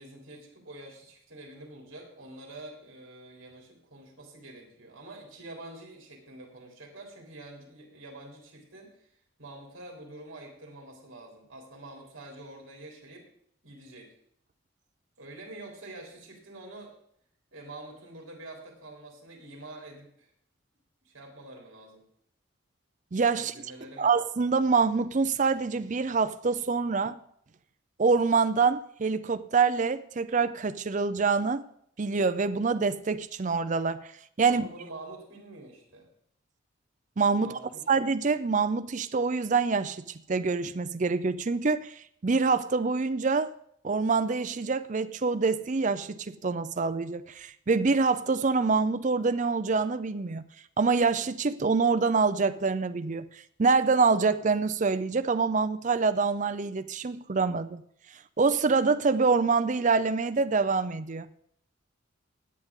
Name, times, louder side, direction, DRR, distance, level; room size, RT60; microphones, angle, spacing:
voice 1, 0.0-13.3 13.6-14.1 15.2-16.9 17.5-20.3 21.0-22.0 23.4-24.1 34.5-36.1 37.4-37.9, right 2 dB, 65° right, 3.4 m, -46 dB
voice 2, 23.1-23.5 24.0-27.2 28.0-31.6 32.0-34.1 34.4-34.7 37.2-37.5 37.9-40.0 40.3-43.5 43.8-50.4 50.8-53.3 53.6-57.8 58.4-61.3, right 4 dB, 35° right, 0.5 m, -25 dB
17.0 x 9.8 x 3.7 m
head